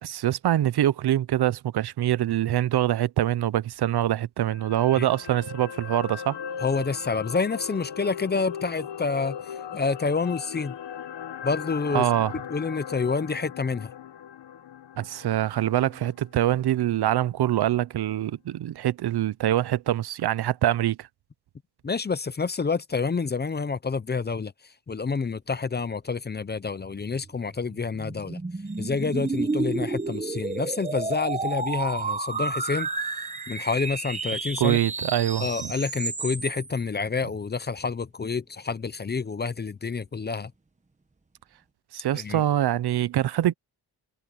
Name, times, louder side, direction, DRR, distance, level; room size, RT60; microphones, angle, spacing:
voice 1, 0.0-6.4 11.9-12.3 15.0-21.1 34.6-35.7 41.9-43.5, right 12 dB, 70° right, 0.6 m, -24 dB
sound 1, 4.4-16.7 17.1-17.2, left 8 dB, 85° left, 1.2 m, -39 dB
voice 2, 6.6-10.7 11.4-12.1 12.5-13.9 21.8-28.4 28.8-32.9 33.5-34.8 35.4-40.5 42.1-42.4, left 4 dB, 25° left, 0.6 m, -28 dB
sound 2, 27.1-36.8, right 3 dB, 15° right, 1.3 m, -31 dB
sound 3, 28.7-35.7, right 6 dB, 45° right, 1.5 m, -47 dB
wide cardioid pair, 160°, 41 cm